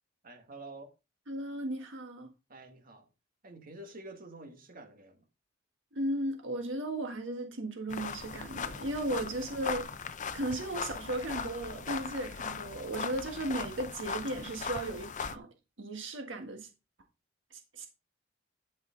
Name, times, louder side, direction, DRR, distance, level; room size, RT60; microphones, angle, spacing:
voice 1, 0.2-0.9 2.5-3.1 3.4-5.2, right 2 dB, 50° right, 1.9 m, -48 dB
voice 2, 1.3-2.3 5.9-9.9 10.3-15.5 15.8-16.7 17.5-17.9, right 1 dB, 70° right, 1.6 m, -36 dB
sound 1, 7.9-15.3, left 5 dB, 40° left, 0.7 m, -39 dB
12.0 x 5.5 x 3.9 m
head